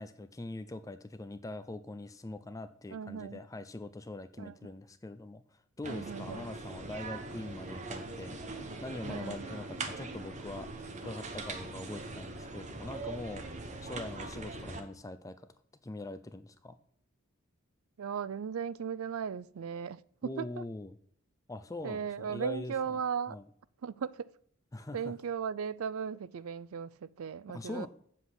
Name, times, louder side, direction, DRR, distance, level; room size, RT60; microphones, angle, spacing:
voice 1, 0.0-5.4 5.8-8.4 8.8-10.7 11.0-13.4 13.8-15.4 15.8-16.8 20.2-20.9 21.5-22.7 23.3-23.4 24.7-25.1 27.5-27.9, left 2 dB, 15° left, 0.4 m, -43 dB
voice 2, 2.9-3.4 4.4-4.5 5.9-6.5 9.1-9.5 18.0-20.6 21.8-23.4 23.8-24.3 24.9-27.9, right 7 dB, 90° right, 0.4 m, -37 dB
sound 1, 5.8-14.8, right 3 dB, 35° right, 1.1 m, -41 dB
8.1 x 7.5 x 5.9 m
head